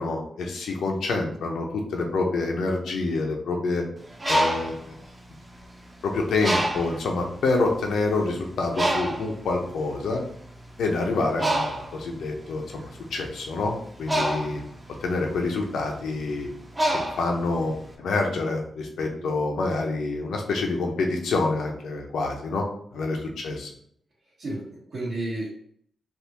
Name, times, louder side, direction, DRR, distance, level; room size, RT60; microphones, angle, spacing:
voice 1, 0.0-3.8 4.3-4.8 6.0-10.2 10.8-13.7 14.0-14.6 15.0-16.5 16.9-22.7 22.9-23.7, left 3 dB, 90° left, 1 dB, 0.7 m, -27 dB
Bird, 4.0-5.9 6.4-7.1 7.8-7.9 8.2-17.9, right 1 dB, 20° right, 0.7 m, -28 dB
voice 2, 19.0-19.4 22.9-23.2 24.4-25.5, right 2 dB, 65° right, -10 dB, 1.3 m, -33 dB
3.5 x 2.5 x 2.9 m, 0.64 s
cardioid pair, 85°, 0 cm